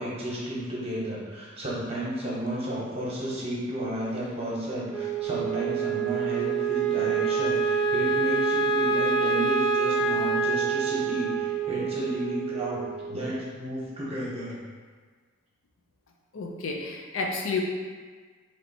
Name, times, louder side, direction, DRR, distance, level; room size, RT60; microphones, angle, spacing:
voice 1, 0.0-14.6, equal, 30° right, -7 dB, 1.0 m, -32 dB
Wind instrument woodwind instrument, 4.9-13.4, right 5 dB, 5° right, 0.6 m, -26 dB
voice 2, 16.3-17.6, left 4 dB, 70° left, 1 dB, 0.5 m, -30 dB
3.2 x 2.8 x 4.1 m, 1.5 s
head